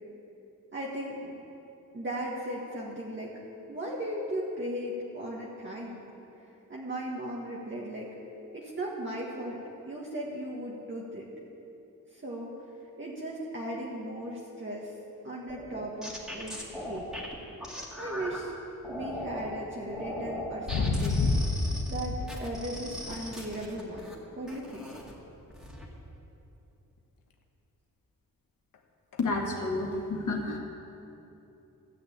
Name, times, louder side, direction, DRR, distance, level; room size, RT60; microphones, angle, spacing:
voice 1, 0.7-1.4 1.9-3.4 3.7-6.0 6.7-8.1 8.5-11.3 12.1-12.6 13.0-14.9 15.2-17.1 18.0-18.5 18.9-21.2 21.9-24.9, right 1 dB, 35° right, -4 dB, 1.6 m, -37 dB
sound 1, 15.5-18.4 18.8-19.5 19.9-24.1 24.5-25.1 25.5-25.9, left 1 dB, ahead, 2.1 m, -39 dB
sound 2, 20.7-22.3 23.1-23.3 29.1-29.2, left 3 dB, 90° left, 1.0 m, -28 dB
voice 2, 29.2-30.6, left 2 dB, 60° left, -1 dB, 2.0 m, -30 dB
13.5 x 6.7 x 8.6 m, 2.9 s
wide cardioid pair, 90°, 33 cm